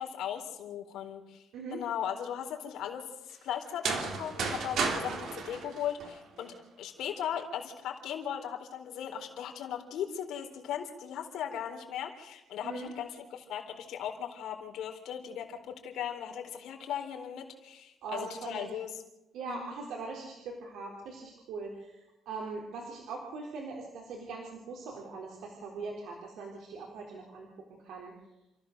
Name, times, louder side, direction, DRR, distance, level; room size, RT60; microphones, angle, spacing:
voice 1, 0.0-1.5 1.7-3.0 3.4-18.9 19.4-19.7, left 9 dB, 70° left, 3 dB, 3.9 m, -38 dB
voice 2, 1.5-1.8 12.6-12.9 18.0-18.7 19.3-28.1, right 3 dB, 80° right, 0 dB, 4.0 m, -41 dB
sound 1, 3.7-6.5, right 4 dB, 60° right, 3.5 m, -33 dB
28.5 x 15.0 x 6.8 m, 0.96 s
cardioid pair, 155°, 0 cm